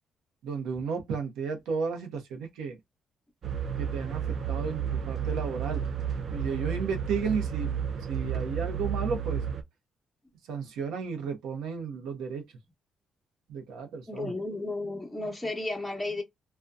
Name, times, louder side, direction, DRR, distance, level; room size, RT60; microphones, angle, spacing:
voice 1, 0.4-2.8 3.8-5.8 6.3-7.8 8.1-9.4 10.5-12.4 13.5-14.3, right 5 dB, 90° right, 0.8 m, -33 dB
sound 1, 3.4-9.6, right 8 dB, 55° right, 0.4 m, -32 dB
voice 2, 14.1-16.2, left 2 dB, 5° left, 0.7 m, -33 dB
2.5 x 2.2 x 2.2 m
cardioid pair, 90°, 0 cm